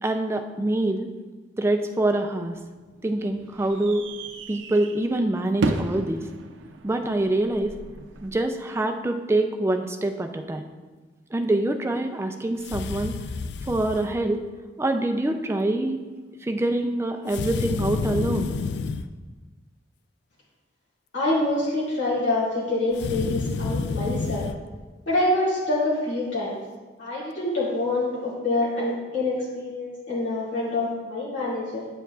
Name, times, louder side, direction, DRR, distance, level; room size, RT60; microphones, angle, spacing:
voice 1, 0.0-1.1 1.6-2.6 3.0-4.0 4.5-6.2 6.8-7.7 8.2-10.6 11.3-13.1 13.7-14.4 14.8-16.0 16.4-18.5, right 1 dB, 15° right, 6 dB, 0.4 m, -25 dB
sound 1, 2.3-8.3, right 2 dB, 90° right, 0.5 m, -34 dB
sound 2, 12.6-14.1 17.3-19.1 22.9-24.6, left 4 dB, 65° left, 0.3 m, -29 dB
voice 2, 21.1-24.5 25.1-26.5 27.0-31.9, left 2 dB, 85° left, -8 dB, 2.4 m, -26 dB
8.9 x 6.9 x 2.4 m, 1.3 s
head